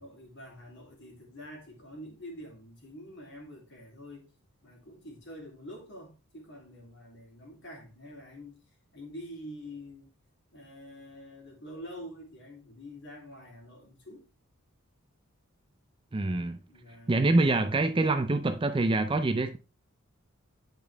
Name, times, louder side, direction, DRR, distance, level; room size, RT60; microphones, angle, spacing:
voice 1, 0.0-4.3 4.6-8.6 8.9-10.1 10.5-14.2 16.7-17.2, equal, 50° left, 3.0 m, -46 dB
voice 2, 16.1-16.6 17.1-19.6, right 2 dB, 20° right, 0.4 m, -25 dB
9.1 x 5.2 x 3.4 m
head